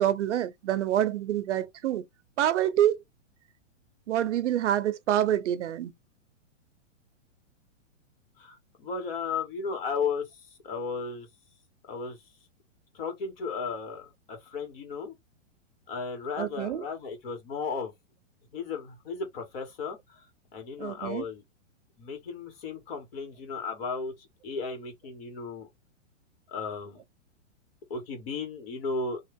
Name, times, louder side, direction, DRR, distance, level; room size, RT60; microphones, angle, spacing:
voice 1, 0.0-2.0 2.4-3.0 4.1-5.9 16.4-16.8 20.8-21.2, right 11 dB, 65° right, 0.6 m, -26 dB
voice 2, 8.4-11.3 11.9-12.2 12.9-15.1 15.9-17.9 18.5-20.2 20.5-21.4 22.0-25.7 26.5-27.0 27.9-29.2, left 5 dB, 50° left, 1.9 m, -35 dB
3.0 x 2.4 x 3.4 m
hypercardioid pair, 165°, 38 cm